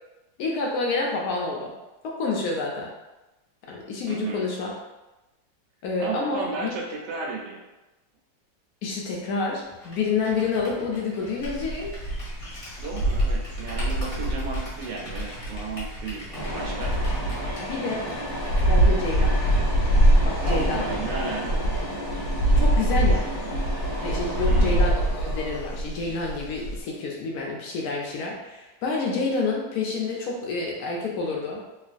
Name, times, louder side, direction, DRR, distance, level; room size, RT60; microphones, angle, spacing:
voice 1, 0.4-1.7 2.0-2.9 3.7-4.7 5.8-6.7 8.8-11.9 17.6-18.1 18.7-19.3 20.2-20.8 22.6-23.3 24.0-24.9 25.2-31.6, left 4 dB, 70° left, -1 dB, 0.9 m, -28 dB
voice 2, 4.1-4.5 6.0-7.7 12.8-16.9 20.5-21.7 24.5-24.8, right 4 dB, 80° right, -1 dB, 1.2 m, -34 dB
Computer keyboard, 9.7-18.7, equal, 45° left, 0.4 m, -43 dB
sound 1, 11.4-26.8, right 1 dB, 85° left, 1.5 m, -24 dB
sound 2, 16.3-25.6, equal, 40° right, 0.8 m, -33 dB
3.0 x 2.4 x 2.4 m, 1.0 s
omnidirectional pair, 1.9 m